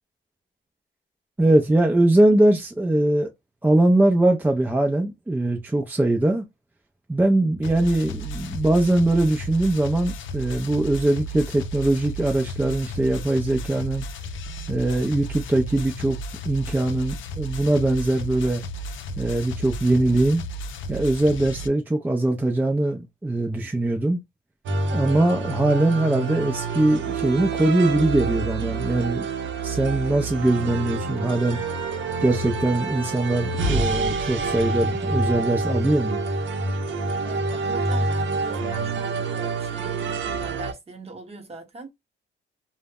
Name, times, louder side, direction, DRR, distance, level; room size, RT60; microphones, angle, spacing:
voice 1, 1.4-3.3 3.6-6.4 7.1-14.1 14.7-16.2 16.4-18.6 19.2-20.4 20.9-24.2 24.9-29.3 29.6-31.6 32.2-36.2, right 1 dB, 10° right, 0.4 m, -21 dB
sound 1, 7.6-21.7, right 1 dB, 80° left, 0.4 m, -34 dB
sound 2, 24.7-40.7, right 3 dB, 70° right, 0.6 m, -27 dB
voice 2, 37.2-41.9, right 2 dB, 30° right, 0.9 m, -41 dB
2.0 x 2.0 x 3.4 m
cardioid pair, 90°, 20 cm